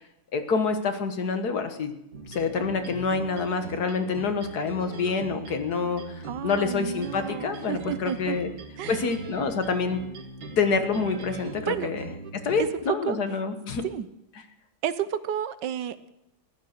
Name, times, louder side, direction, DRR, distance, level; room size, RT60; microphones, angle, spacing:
voice 1, 0.3-1.9 2.3-8.5 8.9-10.0 10.6-12.1 12.4-13.8, left 5 dB, 50° left, 8 dB, 1.7 m, -27 dB
sound 1, 2.1-12.7, right 3 dB, 85° right, 3.3 m, -40 dB
voice 2, 6.2-8.4 8.8-9.0 11.7-11.9 13.0-13.2 13.8-14.1 14.8-16.1, right 9 dB, 65° right, 14 dB, 1.3 m, -31 dB
15.0 x 12.0 x 6.6 m, 0.85 s
omnidirectional pair, 2.3 m